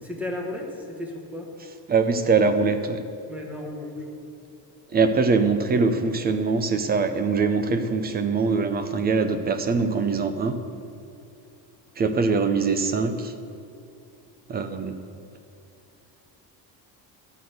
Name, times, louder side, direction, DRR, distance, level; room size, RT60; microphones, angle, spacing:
voice 1, 0.0-1.5 3.3-4.1, left 1 dB, 5° right, 0 dB, 1.2 m, -34 dB
voice 2, 1.9-3.0 4.9-10.6 12.0-13.3 14.5-15.0, right 4 dB, 25° right, 9 dB, 0.5 m, -23 dB
12.0 x 6.0 x 7.9 m, 2.6 s
cardioid pair, 170°, 41 cm